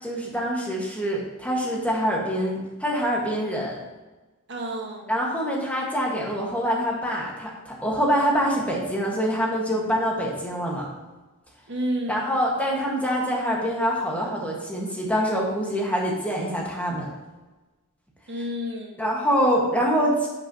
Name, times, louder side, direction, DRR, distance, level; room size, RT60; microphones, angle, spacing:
voice 1, 0.0-3.8 5.1-10.9 12.1-17.1 19.0-20.3, equal, 5° left, -2 dB, 1.4 m, -25 dB
voice 2, 4.5-5.2 11.7-12.3 18.3-19.0, equal, 55° right, 0 dB, 1.4 m, -30 dB
11.0 x 6.5 x 2.8 m, 1.2 s
head